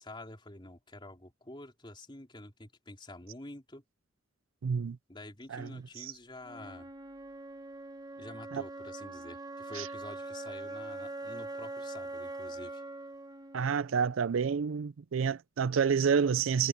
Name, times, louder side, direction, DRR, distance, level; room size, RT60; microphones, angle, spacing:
voice 1, 0.0-3.8 5.1-6.9 8.2-12.8, left 1 dB, 25° left, 3.7 m, -48 dB
voice 2, 4.6-5.0 5.5-5.7 6.0-6.1 8.5-8.6 9.8-9.9 13.5-16.7, right 6 dB, 75° right, 0.4 m, -29 dB
Wind instrument woodwind instrument, 6.4-14.5, right 2 dB, 20° right, 1.0 m, -43 dB
head